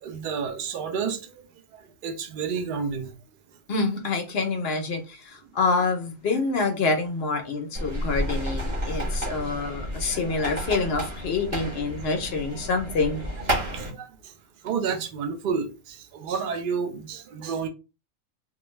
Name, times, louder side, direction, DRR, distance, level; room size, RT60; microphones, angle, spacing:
voice 1, 0.0-1.4 1.7-3.1 8.9-9.0 9.4-9.5 13.7-14.3 14.6-17.7, right 6 dB, 65° right, 0.5 m, -30 dB
voice 2, 3.7-13.3, left 4 dB, 60° left, 0.7 m, -27 dB
sound 1, 7.7-13.9, equal, 35° right, 0.9 m, -31 dB
2.4 x 2.2 x 3.1 m
omnidirectional pair, 1.4 m